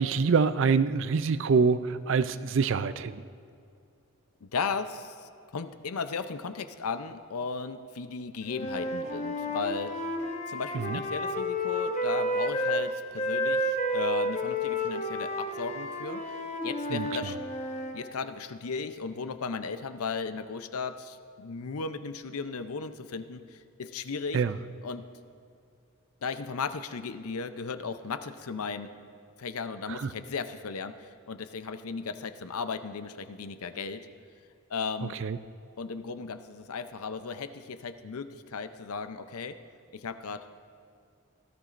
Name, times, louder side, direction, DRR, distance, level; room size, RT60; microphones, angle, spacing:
voice 1, 0.0-3.2 10.7-11.0 16.9-17.1 24.3-24.5 29.9-30.1 35.2-35.4, right 5 dB, 55° right, 13 dB, 0.4 m, -25 dB
voice 2, 4.4-10.0 10.5-17.4 17.9-24.4 24.8-25.0 26.2-28.9 29.4-34.0 34.7-35.2 35.8-39.6 39.9-40.4, left 5 dB, 85° left, 10 dB, 0.6 m, -36 dB
Wind instrument woodwind instrument, 8.5-12.8 13.2-18.0, equal, 30° left, 0.9 m, -31 dB
17.5 x 13.0 x 2.5 m, 2.4 s
head